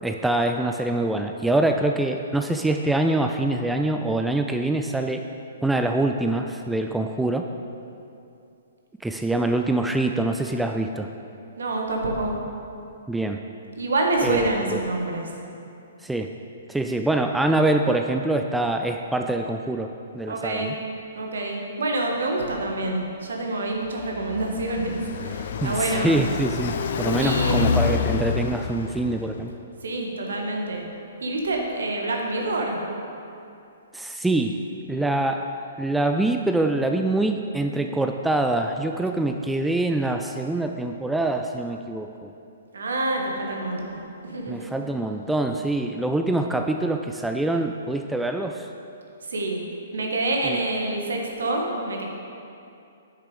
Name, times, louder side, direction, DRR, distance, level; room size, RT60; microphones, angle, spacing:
voice 1, 0.0-5.2 5.6-7.4 9.0-11.1 13.1-13.4 14.2-14.9 16.0-16.3 16.7-20.8 25.6-29.5 33.9-34.6 34.9-35.5 35.8-42.3 44.5-48.7 50.4-50.6, right 2 dB, 5° right, 4 dB, 0.3 m, -24 dB
voice 2, 11.6-12.4 13.8-15.3 20.3-20.7 21.1-26.1 27.2-27.8 29.8-30.8 31.2-32.8 42.7-44.7 49.3-49.6 49.9-52.0, right 2 dB, 65° right, 1 dB, 1.5 m, -27 dB
Car passing by, 23.9-29.4, left 6 dB, 55° left, 0.5 m, -27 dB
9.2 x 6.6 x 4.9 m, 2.6 s
figure-of-eight pair, 120°, 0 cm